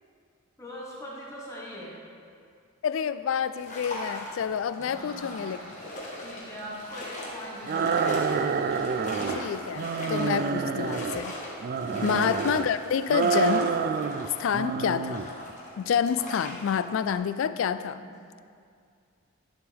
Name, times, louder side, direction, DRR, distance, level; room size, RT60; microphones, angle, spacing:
voice 1, 0.6-2.0 4.8-5.5 6.2-8.2 10.6-10.9 11.8-12.2 17.7-18.1, equal, 15° left, -5 dB, 1.5 m, -42 dB
voice 2, 2.8-5.6 6.2-6.3 9.3-11.3 12.0-13.8 14.4-15.3 15.8-18.0, left 7 dB, 60° left, 13 dB, 0.3 m, -28 dB
sound 1, 3.5-17.1, left 1 dB, 35° left, 1.3 m, -40 dB
sound 2, 4.9-10.5 10.9-11.6, right 2 dB, 85° right, 1.5 m, -46 dB
sound 3, 7.7-9.4 9.7-11.2 11.6-12.7 13.1-14.3 14.5-15.3, right 5 dB, 45° right, 0.3 m, -28 dB
11.5 x 7.1 x 3.5 m, 2.3 s
head